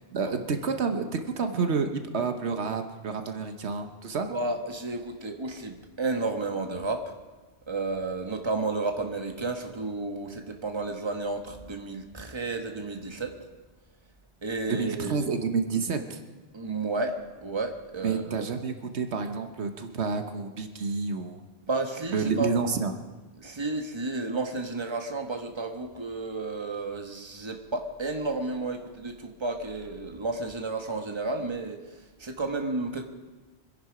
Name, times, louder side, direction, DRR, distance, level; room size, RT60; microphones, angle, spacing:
voice 1, 0.1-4.3 14.7-16.2 18.0-21.4 22.1-22.9, right 5 dB, 80° right, 7 dB, 1.4 m, -29 dB
voice 2, 4.3-7.1 7.7-13.4 14.4-15.3 16.5-18.5 21.7-22.5 23.4-33.0, right 3 dB, 25° right, 4 dB, 1.3 m, -32 dB
25.0 x 10.5 x 5.0 m, 1.2 s
omnidirectional pair, 1.1 m